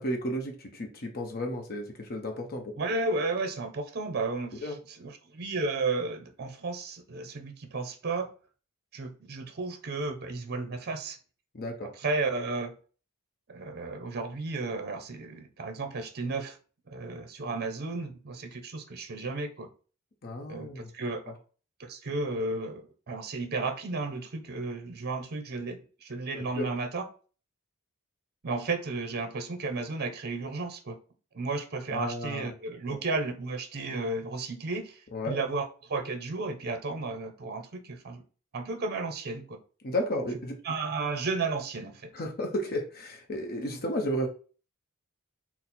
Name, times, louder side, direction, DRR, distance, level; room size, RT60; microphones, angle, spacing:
voice 1, 0.0-2.7 4.6-4.8 11.5-11.9 20.2-20.9 26.3-26.7 31.9-32.5 35.1-35.4 39.8-40.6 42.1-44.3, equal, 45° left, 3 dB, 0.7 m, -33 dB
voice 2, 2.8-8.3 8.9-11.2 12.0-12.8 13.5-16.6 16.9-19.7 20.5-21.3 21.8-27.0 28.4-31.0 31.3-38.2 38.5-39.6 40.6-42.1, right 3 dB, 45° right, 7 dB, 0.6 m, -33 dB
4.1 x 2.0 x 4.2 m, 0.38 s
head